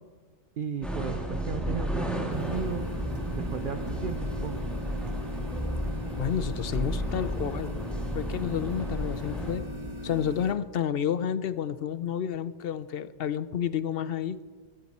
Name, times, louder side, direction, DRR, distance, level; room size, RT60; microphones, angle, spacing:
voice 1, 0.6-2.9 3.3-4.7, right 6 dB, 50° right, 8 dB, 0.9 m, -35 dB
sound 1, 0.8-9.5, equal, ahead, 2.6 m, -33 dB
sound 2, 2.3-10.5, equal, 25° right, 1.4 m, -39 dB
voice 2, 6.2-7.8 8.1-9.6 10.0-14.4, left 9 dB, 60° left, 14 dB, 0.8 m, -30 dB
23.0 x 14.5 x 4.3 m, 1.5 s
omnidirectional pair, 1.2 m